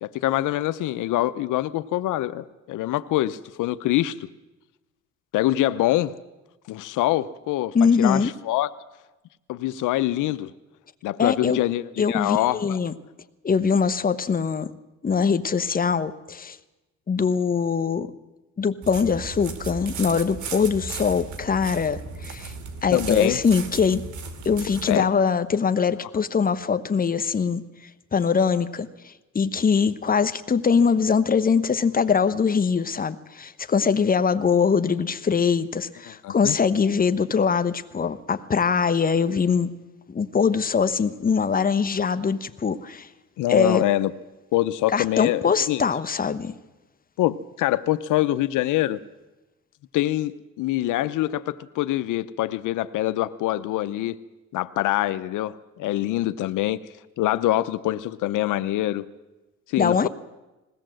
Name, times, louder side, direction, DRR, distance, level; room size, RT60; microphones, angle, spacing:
voice 1, 0.0-4.2 5.3-6.1 6.7-8.7 9.5-10.5 11.0-12.8 22.9-23.4 24.9-25.1 36.2-36.6 43.4-44.1 44.5-45.8 47.2-49.0 49.9-54.2 54.5-56.8 57.2-59.1 59.7-60.1, left 15 dB, 85° left, 0.7 m, -24 dB
voice 2, 7.7-8.3 11.2-11.6 12.0-12.9 13.4-14.7 15.0-16.6 17.1-18.1 18.6-22.5 22.8-24.0 24.4-27.6 28.1-39.7 40.1-43.1 43.5-43.8 44.9-46.5 59.8-60.1, left 6 dB, 30° left, 1.1 m, -22 dB
sound 1, 18.8-25.0, right 5 dB, 75° right, 2.5 m, -36 dB
20.5 x 17.0 x 7.7 m
cardioid pair, 90°, 30 cm